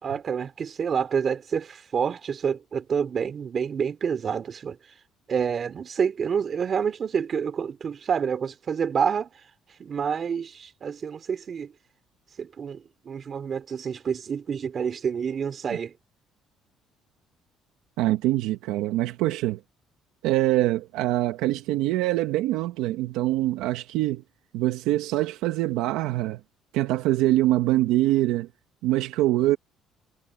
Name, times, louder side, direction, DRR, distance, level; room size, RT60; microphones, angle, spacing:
voice 1, 0.0-4.8 5.3-9.3 9.8-11.7 12.4-15.9, right 7 dB, 45° right, 3.4 m, -28 dB
voice 2, 18.0-19.6 20.2-24.2 24.5-26.4 26.7-28.5 28.8-29.6, right 16 dB, 85° right, 1.4 m, -24 dB
cardioid pair, 90°, 0 cm